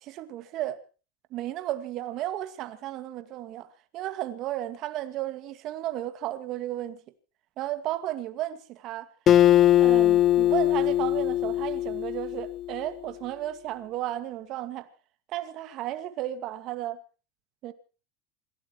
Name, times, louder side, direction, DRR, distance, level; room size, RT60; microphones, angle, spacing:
voice 1, 0.0-0.8 1.3-7.0 7.6-9.1 9.6-14.9 15.3-17.0 17.6-17.7, right 13 dB, 45° right, 2.1 m, -34 dB
Acoustic guitar, 9.3-12.8, left 12 dB, 30° left, 0.8 m, -21 dB
27.0 x 17.0 x 3.1 m
supercardioid pair, 140°, 0 cm